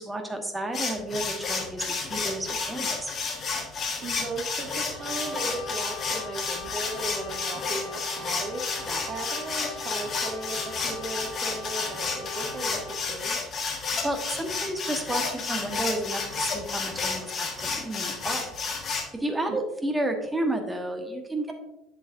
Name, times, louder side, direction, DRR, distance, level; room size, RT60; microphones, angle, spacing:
voice 1, 0.0-3.1 8.9-9.0 14.0-18.5 19.1-21.5, right 1 dB, 10° right, 4 dB, 1.2 m, -31 dB
sound 1, 0.7-19.0, left 4 dB, 35° left, 1.4 m, -31 dB
voice 2, 4.0-8.7 9.1-13.4 19.5-19.6, right 2 dB, 35° right, 5 dB, 1.0 m, -36 dB
Brass instrument, 4.9-13.1, left 3 dB, 55° left, 2.1 m, -41 dB
8.0 x 7.8 x 2.5 m, 0.93 s
figure-of-eight pair, 60°, 0 cm